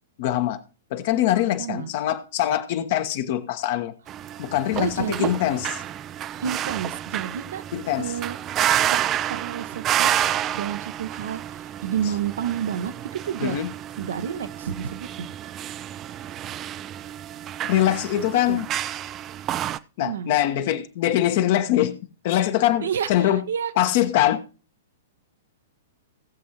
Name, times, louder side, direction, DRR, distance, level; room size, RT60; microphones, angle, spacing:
voice 1, 0.2-0.6 0.9-3.9 4.4-5.7 7.7-8.1 13.4-13.7 17.7-18.7 20.0-22.0 22.2-23.4 23.8-24.4, left 12 dB, 45° left, 1.1 m, -23 dB
voice 2, 1.6-1.9 4.8-5.3 6.4-7.6 8.0-9.0 9.3-10.3 10.5-13.5 14.0-15.3 18.5-18.6 20.0-20.4 22.8-23.7, right 8 dB, 60° right, 0.8 m, -30 dB
sound 1, 4.1-19.8, right 11 dB, 25° right, 0.5 m, -29 dB
17.5 x 7.5 x 3.0 m
figure-of-eight pair, 105°, 0 cm